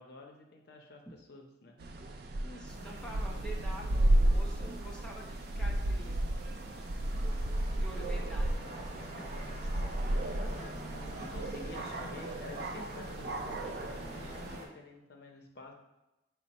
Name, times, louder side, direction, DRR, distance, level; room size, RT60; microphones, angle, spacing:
voice 1, 0.0-1.8 11.2-15.7, left 2 dB, 55° left, 1 dB, 0.6 m, -49 dB
sound 1, 1.8-14.6, right 1 dB, 55° right, 0.3 m, -33 dB
voice 2, 2.4-6.2 7.7-8.7 9.2-9.6 13.7-13.8, right 1 dB, 5° left, -3 dB, 0.5 m, -48 dB
sound 2, 2.6-14.7, equal, 40° right, 0.8 m, -47 dB
5.1 x 2.1 x 4.1 m, 0.97 s
head